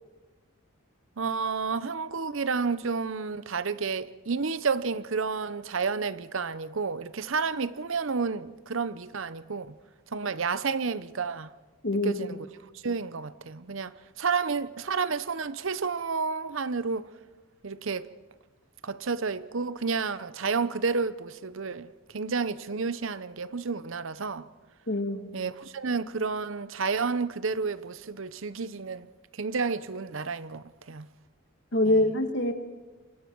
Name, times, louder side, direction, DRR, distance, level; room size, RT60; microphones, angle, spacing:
voice 1, 1.2-9.8 10.1-11.5 11.9-12.5 12.7-17.1 17.6-18.1 18.8-24.5 25.3-29.1 29.3-31.1 31.8-32.1, right 5 dB, 65° right, 0.7 m, -31 dB
voice 2, 24.9-25.3 31.7-32.5, left 1 dB, 55° left, 1.9 m, -24 dB
27.5 x 23.5 x 4.7 m
head